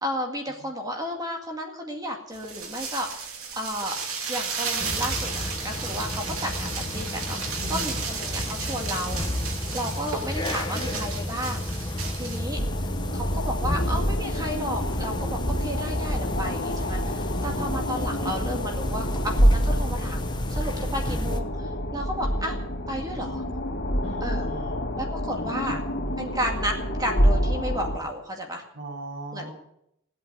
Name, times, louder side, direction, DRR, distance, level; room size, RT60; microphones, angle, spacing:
voice 1, 0.0-3.1 3.5-4.0 4.3-9.2 9.7-11.7 11.9-12.9 13.1-22.6 22.9-23.4 24.2-24.5 25.0-25.8 26.2-28.6 29.3-29.5, equal, 20° right, 2 dB, 2.1 m, -33 dB
sound 1, 2.3-12.4, right 5 dB, 80° right, 2.8 m, -34 dB
sound 2, 4.8-21.4, left 1 dB, 20° left, 1.1 m, -32 dB
voice 2, 7.6-8.1 9.7-10.0 17.4-17.7 24.0-24.9 25.4-26.2 28.7-29.5, right 2 dB, 45° right, -1 dB, 7.6 m, -40 dB
sound 3, 12.5-28.0, equal, 55° left, 2.7 m, -27 dB
17.0 x 8.6 x 9.0 m, 0.76 s
head